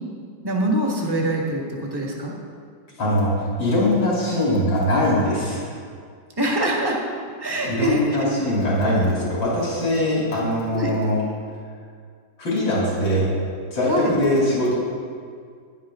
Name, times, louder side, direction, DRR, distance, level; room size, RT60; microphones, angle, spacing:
voice 1, 0.4-2.3 6.4-7.0 7.4-8.0 10.7-10.9 13.9-14.1, right 1 dB, 15° right, -2 dB, 1.6 m, -24 dB
voice 2, 3.0-3.3 3.6-5.6 7.6-11.2 12.4-13.3 13.7-14.7, left 1 dB, 85° left, -6 dB, 4.0 m, -21 dB
15.0 x 10.5 x 3.8 m, 2.1 s
omnidirectional pair, 2.0 m